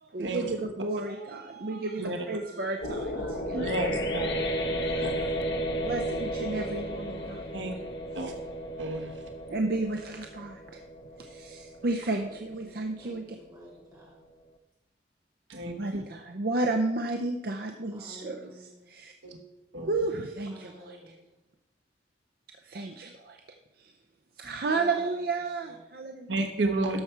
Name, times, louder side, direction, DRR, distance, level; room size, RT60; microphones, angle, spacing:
voice 1, 0.0-3.6 4.8-5.1 5.8-7.4 9.5-10.8 11.2-13.3 15.7-19.1 19.9-21.0 22.6-23.4 23.8-23.9 24.4-26.3, right 2 dB, 55° right, 4 dB, 0.6 m, -32 dB
voice 2, 2.5-2.8 3.1-3.6 4.1-5.0 6.5-7.5 8.1-8.3 12.1-12.3 12.6-14.2 17.9-18.8 20.5-21.3 24.6-25.8, right 1 dB, 20° right, -6 dB, 3.4 m, -50 dB
sound 1, 2.8-8.0, left 2 dB, 75° left, 1.1 m, -37 dB
sound 2, 3.0-12.9, right 1 dB, 30° left, 0.6 m, -35 dB
voice 3, 3.5-4.4 5.0-5.1 7.5-7.7 8.1-8.3 8.8-9.2 15.5-16.0 19.2-19.4 19.7-19.9 26.3-27.0, right 2 dB, 85° right, 3 dB, 1.1 m, -31 dB
13.0 x 5.8 x 4.5 m, 1.0 s
head